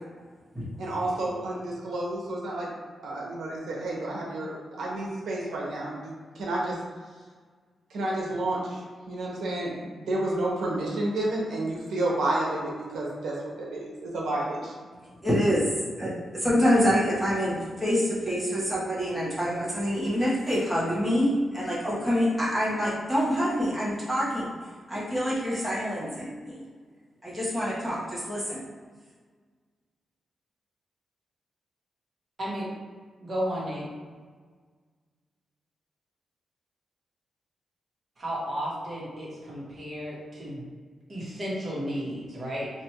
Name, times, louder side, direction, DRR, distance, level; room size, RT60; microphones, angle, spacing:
voice 1, 0.8-2.7 3.0-6.8 7.9-14.7, right 1 dB, 90° right, -3 dB, 0.9 m, -30 dB
voice 2, 15.2-24.5 24.9-26.6 27.2-28.7, equal, 5° right, -9 dB, 1.1 m, -26 dB
voice 3, 33.2-33.8 38.2-40.6 41.1-42.7, equal, 35° right, -6 dB, 1.2 m, -33 dB
3.0 x 2.5 x 4.3 m, 1.5 s
wide cardioid pair, 155°, 0 cm